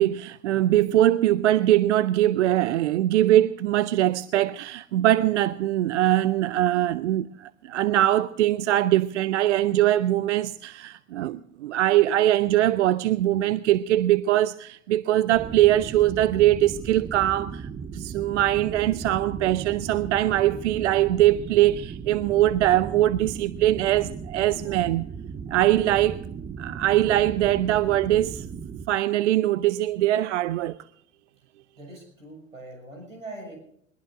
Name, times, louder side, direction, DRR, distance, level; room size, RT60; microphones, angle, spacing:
voice 1, 0.0-25.1 25.5-26.2 26.6-28.5 28.9-30.8, right 13 dB, 65° right, 0.5 m, -22 dB
sound 1, 15.3-28.9, right 6 dB, 20° right, 0.7 m, -37 dB
voice 2, 31.8-33.5, right 2 dB, 85° right, 6.9 m, -42 dB
21.5 x 21.0 x 2.5 m
figure-of-eight pair, 80°, 38 cm